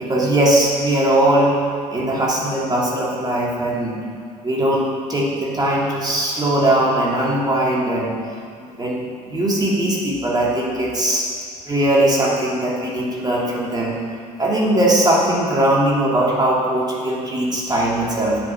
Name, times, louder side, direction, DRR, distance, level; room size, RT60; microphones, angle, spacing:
voice 1, 0.0-1.6 1.9-4.0 4.4-8.1 8.6-11.2 11.7-14.0 14.4-18.4, right 1 dB, 20° right, -4 dB, 2.6 m, -19 dB
8.4 x 8.1 x 6.0 m, 2.2 s
hypercardioid pair, 60°, 20 cm